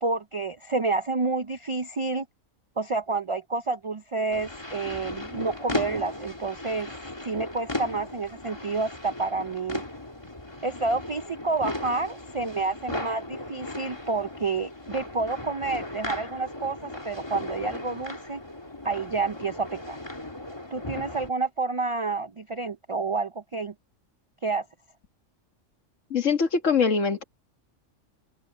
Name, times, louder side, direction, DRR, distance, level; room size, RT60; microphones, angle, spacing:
voice 1, 0.0-2.3 2.8-6.9 7.2-9.8 10.6-18.4 18.8-20.0 20.7-23.7 24.4-24.7, right 3 dB, 55° right, 0.3 m, -29 dB
sound 1, 4.3-21.3, left 2 dB, 20° left, 2.4 m, -36 dB
voice 2, 26.1-27.2, left 5 dB, 75° left, 2.0 m, -23 dB
open air
omnidirectional pair, 1.3 m